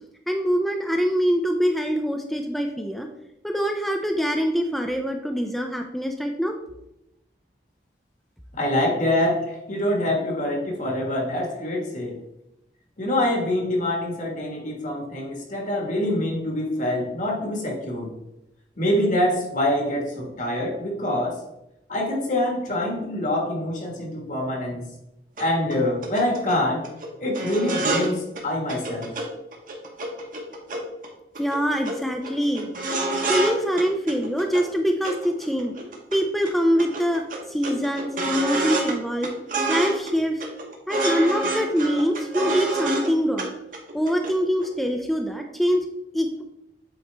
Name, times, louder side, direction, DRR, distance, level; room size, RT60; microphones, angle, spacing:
voice 1, 0.3-3.1 3.4-6.5 31.4-32.7 33.3-35.7 36.1-37.2 37.5-39.3 39.7-40.4 40.9-43.5 43.9-45.8 46.1-46.4, equal, ahead, 3 dB, 0.4 m, -24 dB
voice 2, 8.5-12.2 13.0-18.1 18.8-21.4 21.9-24.9 25.4-26.9 27.2-29.1, left 1 dB, 45° left, 0 dB, 1.5 m, -25 dB
sound 1, 25.4-25.5 25.7-25.8 26.0-26.6 26.8-27.1 27.3-28.1 28.3-28.4 28.7-29.2 29.5-31.1 31.3-31.6 31.8-31.9 32.2-33.5 33.8-34.6 35.0-36.2 36.4-36.5 36.8-38.9 39.2-40.1 40.4-43.1 43.4-43.5 43.7-44.3 44.6-44.7, right 2 dB, 50° right, 1.1 m, -27 dB
7.9 x 4.2 x 3.4 m, 0.87 s
head